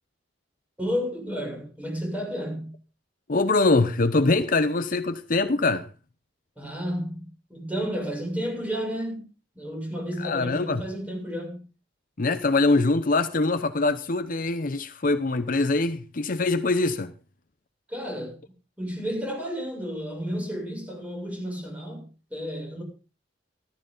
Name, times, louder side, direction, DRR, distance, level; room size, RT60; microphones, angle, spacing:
voice 1, 0.8-2.7 6.6-9.2 9.6-11.6 17.9-18.4 18.8-22.8, equal, 10° right, 7.0 m, -32 dB
voice 2, 3.3-5.9 10.2-10.8 12.2-17.1, left 3 dB, 45° left, 0.7 m, -23 dB
14.5 x 14.0 x 4.0 m
head